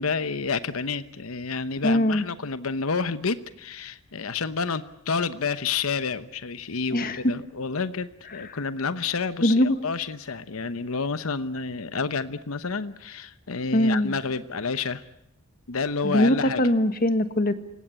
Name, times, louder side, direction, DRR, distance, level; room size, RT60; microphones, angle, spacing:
voice 1, 0.0-15.0 15.7-16.6, left 5 dB, 90° left, 13 dB, 0.9 m, -29 dB
voice 2, 1.8-2.2 6.9-7.2 9.4-9.8 13.7-14.1 16.0-17.5, left 1 dB, 45° left, 10 dB, 1.6 m, -21 dB
27.5 x 16.5 x 9.8 m, 0.84 s
head